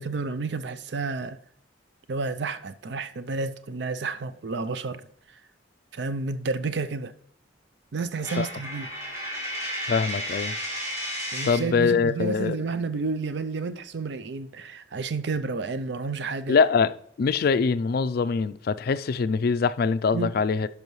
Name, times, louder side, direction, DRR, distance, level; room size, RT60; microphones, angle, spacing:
voice 1, 0.0-1.4 2.1-5.1 5.9-7.1 7.9-8.9 11.3-16.6 20.1-20.3, right 4 dB, 65° right, 0.5 m, -30 dB
Coin (dropping), 8.2-11.7, equal, 15° right, 2.9 m, -33 dB
voice 2, 9.9-10.5 11.4-12.6 16.5-20.7, left 5 dB, 55° left, 0.4 m, -23 dB
12.0 x 5.5 x 3.1 m
head